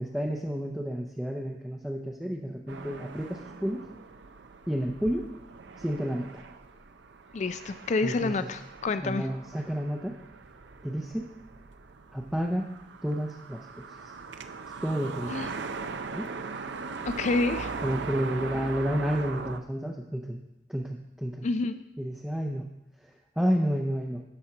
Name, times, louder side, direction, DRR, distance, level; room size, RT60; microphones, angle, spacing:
voice 1, 0.0-3.8 4.7-5.3 5.8-6.3 8.0-8.5 9.0-10.1 10.8-11.3 12.1-12.6 13.0-14.1 14.8-15.6 16.1-16.3 17.8-20.4 20.7-21.4 22.0-22.6 23.4-24.2, equal, 5° right, 0 dB, 0.6 m, -30 dB
sound 1, 2.7-19.6, right 4 dB, 75° right, 0.6 m, -40 dB
voice 2, 7.3-9.3 15.3-15.5 17.1-17.7 21.4-21.8, left 3 dB, 40° left, 11 dB, 0.3 m, -28 dB
12.5 x 4.3 x 5.9 m, 0.90 s
head